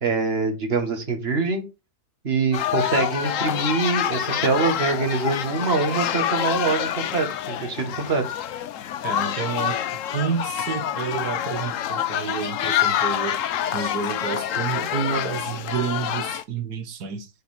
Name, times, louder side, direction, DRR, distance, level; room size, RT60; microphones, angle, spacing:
voice 1, 0.0-1.6 2.2-8.2, right 4 dB, 40° right, 1.9 m, -24 dB
sound 1, 2.5-16.4, left 10 dB, 65° left, 0.9 m, -27 dB
voice 2, 9.0-9.8 10.1-17.3, right 6 dB, 75° right, 1.6 m, -29 dB
7.1 x 4.5 x 4.2 m
omnidirectional pair, 1.7 m